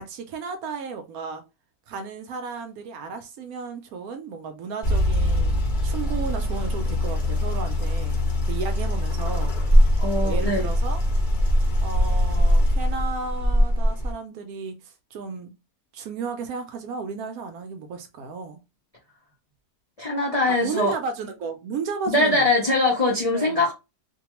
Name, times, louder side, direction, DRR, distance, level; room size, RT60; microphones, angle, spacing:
voice 1, 0.0-1.4 1.9-8.2 8.5-9.5 10.2-11.0 11.8-15.5 15.9-18.6 20.6-22.5 23.2-23.6, right 5 dB, 70° right, 1.0 m, -34 dB
sound 1, 4.8-14.1, equal, 40° left, 0.7 m, -22 dB
voice 2, 10.0-10.6 20.0-20.9 22.1-23.7, left 2 dB, 65° left, 0.3 m, -22 dB
2.7 x 2.2 x 2.9 m
omnidirectional pair, 1.7 m